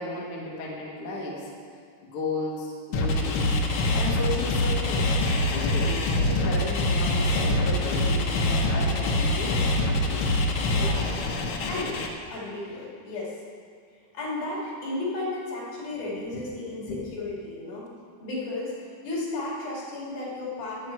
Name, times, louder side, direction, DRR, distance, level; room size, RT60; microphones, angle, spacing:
voice 1, 0.0-1.5 2.0-3.6 3.9-5.1 5.4-9.6 16.3-16.4 16.9-17.1, left 2 dB, 50° left, -4 dB, 2.2 m, -34 dB
sound 1, 2.9-12.1, left 1 dB, 65° left, 1.3 m, -24 dB
voice 2, 10.6-11.2 11.7-12.0 12.3-13.4 14.1-17.9 18.2-20.9, left 2 dB, 80° left, -5 dB, 4.2 m, -34 dB
13.5 x 8.9 x 4.7 m, 2.1 s
omnidirectional pair, 3.6 m